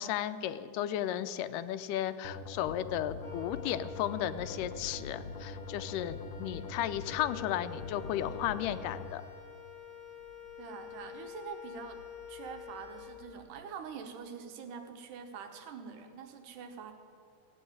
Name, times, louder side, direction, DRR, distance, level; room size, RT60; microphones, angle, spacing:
voice 1, 0.0-9.2, left 11 dB, 85° left, 12 dB, 2.2 m, -34 dB
sound 1, 2.2-9.1, left 3 dB, 70° left, 1.3 m, -43 dB
Wind instrument woodwind instrument, 3.2-13.6, left 8 dB, 40° left, 3.7 m, -49 dB
voice 2, 10.6-12.0 12.3-16.9, right 6 dB, 80° right, 6 dB, 2.6 m, -45 dB
15.5 x 7.9 x 9.4 m, 2.3 s
omnidirectional pair, 3.7 m